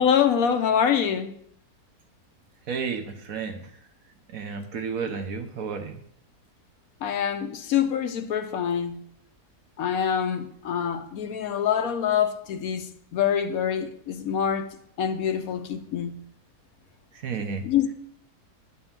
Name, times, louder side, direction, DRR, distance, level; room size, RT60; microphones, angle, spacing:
voice 1, 0.0-1.3 7.0-9.0 9.8-14.7 15.0-16.2 17.6-17.9, left 8 dB, 70° left, 1.1 m, -25 dB
voice 2, 2.7-3.8 4.3-6.0 17.1-17.7, right 5 dB, 65° right, 1.3 m, -32 dB
9.8 x 4.4 x 7.3 m
omnidirectional pair, 1.7 m